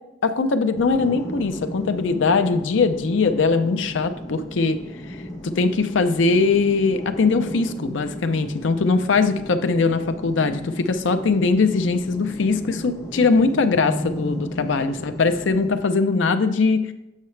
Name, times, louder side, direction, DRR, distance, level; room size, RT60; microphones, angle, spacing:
voice 1, 0.2-4.8 5.1-5.2 5.4-16.9, left 4 dB, 80° left, 9 dB, 0.5 m, -21 dB
sound 1, 0.8-15.8, equal, 15° left, 1.2 m, -35 dB
7.3 x 5.7 x 3.2 m, 0.91 s
head